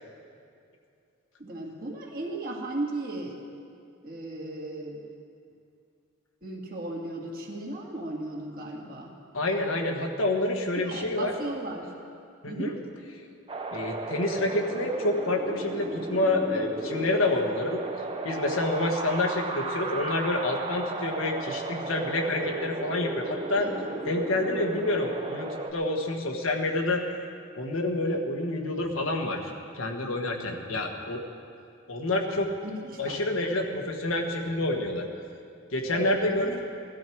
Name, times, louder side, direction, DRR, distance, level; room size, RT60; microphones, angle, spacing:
voice 1, 1.4-3.4 4.0-5.0 6.4-9.1 10.7-11.9 12.5-12.8 23.6-23.9 32.6-33.2 35.9-36.5, right 2 dB, 45° right, -1 dB, 2.1 m, -36 dB
voice 2, 9.3-11.3 12.4-12.7 13.7-17.8 18.2-23.7 24.1-27.0 27.6-31.2 31.9-32.5 33.0-35.1 35.7-36.6, left 2 dB, 80° left, 2 dB, 1.5 m, -28 dB
Wind, 13.5-25.7, right 2 dB, 25° right, 0.8 m, -35 dB
18.0 x 13.0 x 4.6 m, 2.5 s
head